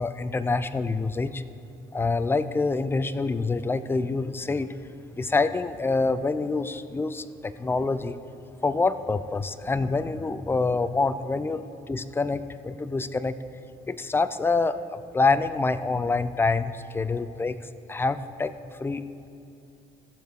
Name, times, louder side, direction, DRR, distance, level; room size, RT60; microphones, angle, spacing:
voice 1, 0.0-1.4 1.9-4.7 5.1-8.2 8.6-13.4 13.9-17.6 17.9-18.5 18.8-19.0, left 3 dB, 15° left, 13 dB, 0.4 m, -26 dB
15.0 x 6.8 x 4.7 m, 2.7 s
cardioid pair, 110°, 17 cm